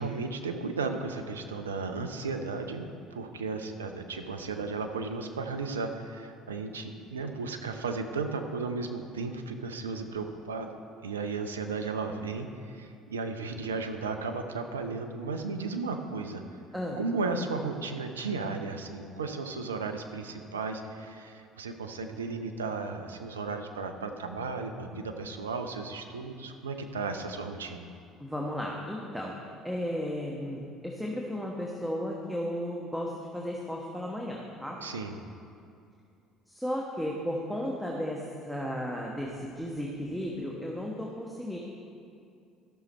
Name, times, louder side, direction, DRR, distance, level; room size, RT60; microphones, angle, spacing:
voice 1, 0.0-10.7 11.0-16.4 17.0-27.9 34.8-35.1, right 4 dB, 90° right, 6 dB, 0.6 m, -35 dB
voice 2, 28.2-29.4 29.6-34.8 36.5-41.6, equal, ahead, -2 dB, 1.3 m, -34 dB
13.5 x 6.4 x 4.3 m, 2.4 s
hypercardioid pair, 60°, 0 cm